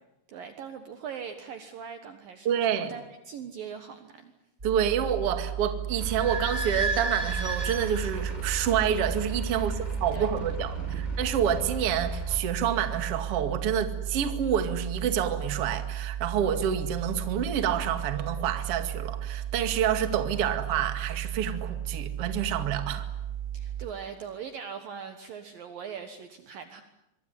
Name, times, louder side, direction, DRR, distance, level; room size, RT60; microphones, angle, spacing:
voice 1, 0.3-4.3 9.5-10.3 10.8-11.2 23.5-26.8, right 7 dB, 65° right, 8 dB, 2.6 m, -41 dB
voice 2, 2.4-2.9 4.6-9.7 10.0-10.8 11.2-23.1, right 8 dB, 45° right, 8 dB, 2.2 m, -28 dB
sound 1, 4.6-23.9, right 10 dB, 15° right, 6.5 m, -35 dB
Idling / Squeak, 6.0-12.4, right 1 dB, 10° left, 3.6 m, -35 dB
25.5 x 23.0 x 9.9 m, 0.89 s
omnidirectional pair, 5.3 m